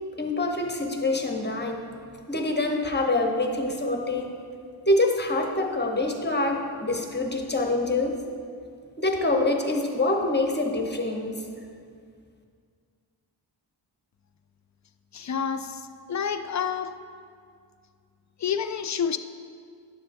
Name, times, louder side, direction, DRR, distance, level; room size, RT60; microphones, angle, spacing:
voice 1, 0.2-1.9 2.3-4.3 4.9-8.2 9.0-11.4, left 2 dB, 20° left, 2 dB, 0.8 m, -25 dB
voice 2, 15.1-17.0 18.4-19.2, left 7 dB, 40° left, 10 dB, 0.4 m, -29 dB
9.8 x 6.8 x 2.6 m, 2.2 s
wide cardioid pair, 45°, 46 cm